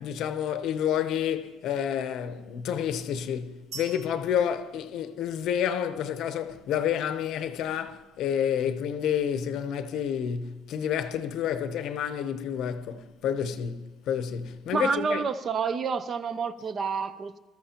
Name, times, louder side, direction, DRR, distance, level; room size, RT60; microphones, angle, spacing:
voice 1, 0.0-15.2, left 9 dB, 55° left, 0.7 m, -29 dB
sound 1, 3.7-5.7, right 5 dB, 75° right, 2.2 m, -46 dB
voice 2, 14.7-17.4, right 5 dB, 30° right, 0.4 m, -29 dB
20.5 x 13.0 x 2.9 m
cardioid pair, 170°, 0 cm